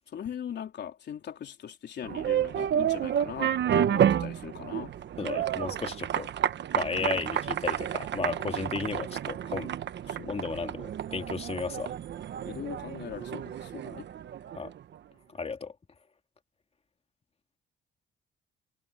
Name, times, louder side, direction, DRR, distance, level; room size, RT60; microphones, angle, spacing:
voice 1, 0.1-5.0 7.0-7.2 10.1-10.4 12.4-14.1, left 9 dB, 60° left, 3.8 m, -40 dB
sound 1, 2.0-14.8, right 10 dB, 60° right, 1.1 m, -30 dB
voice 2, 5.2-6.3 6.7-9.7 10.3-11.9 14.5-14.7 15.3-15.7, left 4 dB, 30° left, 2.6 m, -34 dB
cardioid pair, 90°, 20 cm